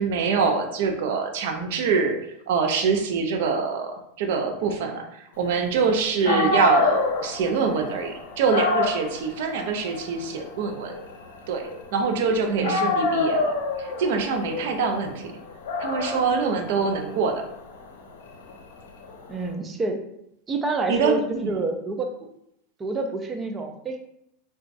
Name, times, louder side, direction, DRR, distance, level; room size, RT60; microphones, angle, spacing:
voice 1, 0.0-2.1 2.5-10.9 11.5-11.6 11.9-15.3 15.8-17.4 20.9-21.6, right 5 dB, 70° right, 3 dB, 0.6 m, -24 dB
Dog, 5.9-6.0 6.2-12.3 12.6-19.4, left 3 dB, 85° left, 0.6 m, -28 dB
voice 2, 12.5-12.9 19.3-20.0 20.5-21.2 21.5-22.1 22.8-24.0, right 3 dB, 25° right, 5 dB, 0.5 m, -28 dB
3.9 x 2.4 x 2.6 m, 0.77 s
hypercardioid pair, 115°, 0 cm